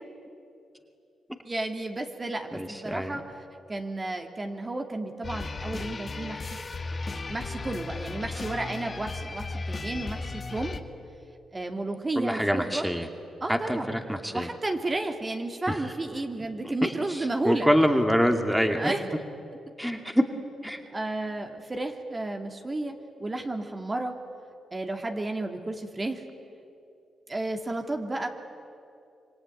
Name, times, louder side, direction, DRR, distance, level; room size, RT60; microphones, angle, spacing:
voice 1, 1.4-3.3 3.7-6.6 7.3-10.8 11.5-12.9 13.4-14.0 14.3-17.7 18.7-19.0 20.9-24.1 24.7-26.2 27.3-28.3, right 2 dB, 30° right, 4 dB, 2.5 m, -32 dB
voice 2, 2.5-3.2 12.2-13.1 13.5-14.5 15.7-15.8 16.6-18.9 19.8-20.2 20.6-20.8, equal, 5° right, 5 dB, 2.4 m, -25 dB
sound 1, 5.2-10.8, left 3 dB, 40° left, 1.9 m, -35 dB
26.5 x 23.0 x 9.5 m, 2.6 s
cardioid pair, 60°, 0 cm